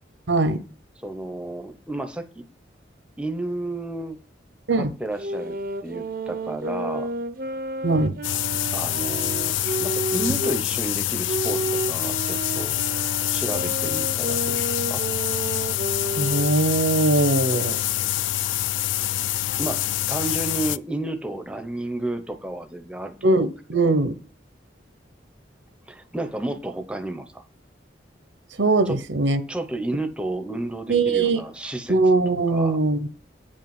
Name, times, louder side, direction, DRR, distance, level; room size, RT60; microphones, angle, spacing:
voice 1, 0.3-0.6 4.7-4.9 7.8-8.1 16.2-17.8 23.2-24.1 28.6-29.4 30.9-31.4 31.9-33.1, right 2 dB, 80° right, 1.0 m, -21 dB
voice 2, 1.0-2.4 3.2-4.2 4.7-5.6 5.8-7.1 8.7-12.8 13.3-14.6 14.9-15.0 19.6-23.5 23.8-24.0 25.9-27.4 28.9-29.0 29.5-32.0 32.5-32.8, right 2 dB, 5° right, 0.9 m, -32 dB
sound 1, 5.2-10.6 11.3-16.6, right 2 dB, 50° right, 0.7 m, -31 dB
sound 2, 8.2-20.8, left 13 dB, 90° left, 0.4 m, -26 dB
8.6 x 5.4 x 7.2 m
head